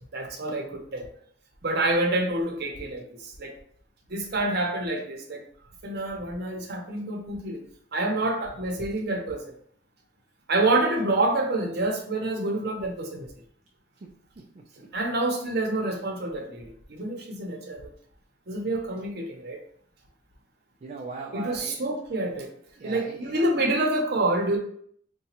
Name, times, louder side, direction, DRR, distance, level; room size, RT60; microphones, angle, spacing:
voice 1, 0.1-1.1 1.6-3.5 4.1-5.4 5.8-7.6 7.9-9.5 10.5-13.3 14.9-17.8 18.5-19.6 21.3-22.5 22.8-24.6, right 2 dB, 55° right, 1 dB, 0.7 m, -27 dB
voice 2, 14.0-14.9 20.8-21.8 22.8-23.5, right 4 dB, 35° right, 0 dB, 0.3 m, -40 dB
3.9 x 2.2 x 2.9 m, 0.62 s
head